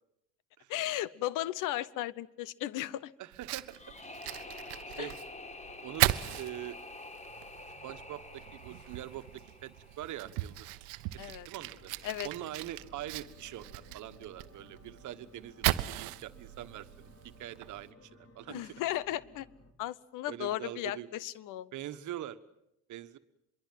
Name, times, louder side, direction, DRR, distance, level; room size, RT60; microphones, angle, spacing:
voice 1, 0.7-3.1 4.9-5.1 11.2-11.5 12.0-12.3 18.5-19.5 19.8-21.7, left 14 dB, 70° left, 21 dB, 1.0 m, -35 dB
voice 2, 3.2-3.8 4.9-5.2 5.8-6.1 6.4-6.8 7.8-10.8 11.2-11.9 12.2-17.1 17.4-18.7 20.3-21.1 21.7-22.4 22.9-23.2, right 13 dB, 60° right, 11 dB, 1.4 m, -43 dB
Fire, 3.3-17.9, right 18 dB, 80° right, 0.9 m, -38 dB
sound 1, 3.7-10.7, left 2 dB, 20° left, 2.1 m, -48 dB
sound 2, 11.6-19.7, left 2 dB, 45° left, 4.2 m, -58 dB
25.0 x 22.5 x 7.6 m, 0.80 s
supercardioid pair, 70°, 33 cm